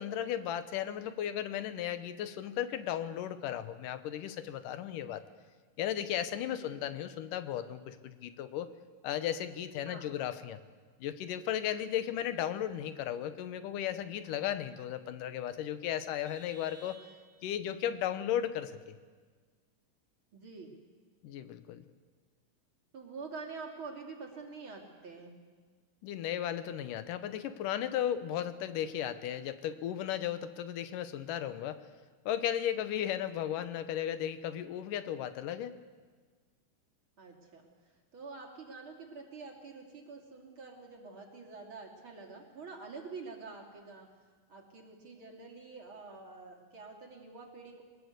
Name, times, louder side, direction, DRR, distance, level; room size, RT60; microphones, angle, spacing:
voice 1, 0.0-5.2 5.8-8.7 9.0-10.6 11.0-17.0 17.4-18.9 21.2-21.8 26.0-31.8 32.3-35.8, left 10 dB, 85° left, 11 dB, 2.6 m, -35 dB
Vehicle horn car horn honking, 16.3-17.7, right 1 dB, 90° right, 4.4 m, -56 dB
voice 2, 20.3-20.7 22.9-25.4 37.2-37.6 38.1-44.1 44.5-47.8, right 4 dB, 40° right, 1 dB, 3.3 m, -47 dB
23.0 x 20.0 x 8.2 m, 1.5 s
omnidirectional pair, 3.7 m